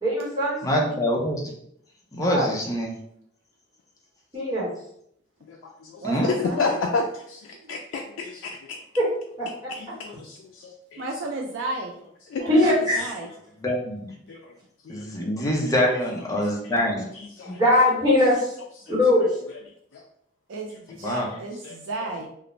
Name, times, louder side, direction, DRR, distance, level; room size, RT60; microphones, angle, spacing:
voice 1, 0.0-0.8 2.2-2.4 4.3-4.7 9.0-9.1 9.4-9.5 12.4-13.1 17.4-18.5 18.9-19.3, left 1 dB, 20° right, -6 dB, 0.9 m, -21 dB
voice 2, 0.6-1.5 2.1-3.0 6.0-6.3 13.6-14.2 14.9-17.1 21.0-21.3, equal, 20° left, -1 dB, 0.5 m, -25 dB
voice 3, 5.5-8.8 9.7-10.7 12.3-12.5 14.3-14.5 14.8-15.1 17.1-17.6 18.9-19.0 19.9-20.0 21.0-21.3 21.6-22.1, left 4 dB, 90° left, 1 dB, 0.3 m, -31 dB
voice 4, 6.0-6.8 7.6-7.8 11.0-11.9 12.7-13.3 20.5-20.7 21.0-22.3, right 2 dB, 80° right, 0 dB, 0.3 m, -33 dB
2.5 x 2.0 x 3.0 m, 0.71 s
head